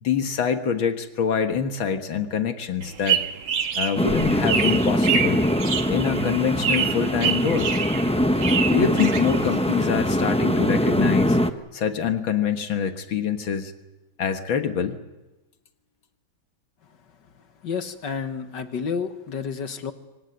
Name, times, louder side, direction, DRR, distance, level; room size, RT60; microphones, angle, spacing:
voice 1, 0.0-3.2 3.8-5.4 5.9-7.7 8.7-11.4 11.7-13.7 14.2-15.0, left 7 dB, 85° left, 7 dB, 2.3 m, -25 dB
sound 1, 2.8-9.8, right 7 dB, 80° right, 2.3 m, -27 dB
sound 2, 4.0-11.5, equal, 5° left, 0.5 m, -22 dB
voice 2, 17.6-19.9, left 6 dB, 65° left, 9 dB, 1.9 m, -30 dB
25.5 x 16.5 x 9.4 m, 1.1 s
omnidirectional pair, 2.1 m